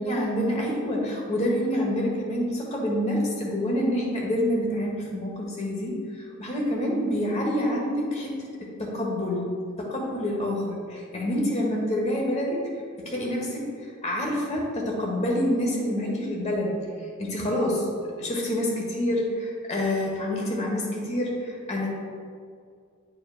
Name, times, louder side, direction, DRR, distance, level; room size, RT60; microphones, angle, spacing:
voice 1, 0.0-9.5 9.8-12.7 13.0-13.7 14.0-16.8 17.2-17.9 18.2-21.9, left 1 dB, 30° left, -2 dB, 1.3 m, -27 dB
10.5 x 4.8 x 2.4 m, 2.2 s
head